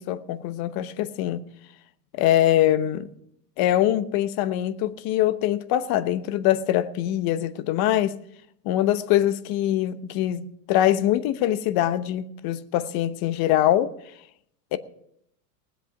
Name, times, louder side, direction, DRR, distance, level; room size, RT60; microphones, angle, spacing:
voice 1, 0.0-1.4 2.1-3.1 3.6-8.2 8.6-13.9 14.7-14.8, left 12 dB, 50° left, 1.0 m, -23 dB
19.5 x 7.9 x 6.0 m
supercardioid pair, 115°, 48 cm